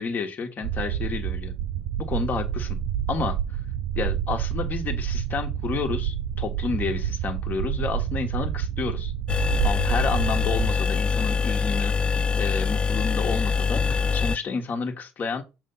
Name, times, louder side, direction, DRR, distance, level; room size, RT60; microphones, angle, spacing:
voice 1, 0.0-1.5 2.0-2.8 3.1-3.4 4.0-9.1 9.6-15.4, left 5 dB, 45° left, 1.6 m, -30 dB
sound 1, 0.6-10.8, right 10 dB, 70° right, 0.5 m, -28 dB
sound 2, 9.3-14.4, left 5 dB, 25° left, 0.3 m, -24 dB
6.6 x 3.4 x 5.5 m
hypercardioid pair, 55°, 4 cm